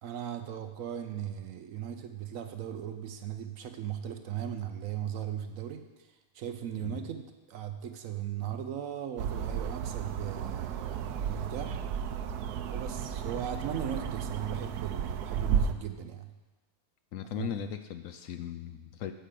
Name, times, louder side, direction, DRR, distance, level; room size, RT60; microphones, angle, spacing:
voice 1, 0.0-5.9 6.3-11.8 12.7-16.3 17.3-17.7, right 9 dB, 65° right, 8 dB, 1.0 m, -37 dB
sound 1, 9.2-15.7, right 8 dB, 90° right, 1.1 m, -33 dB
voice 2, 17.1-19.1, left 10 dB, 70° left, 8 dB, 0.9 m, -38 dB
8.8 x 4.9 x 7.5 m, 1.2 s
omnidirectional pair, 1.6 m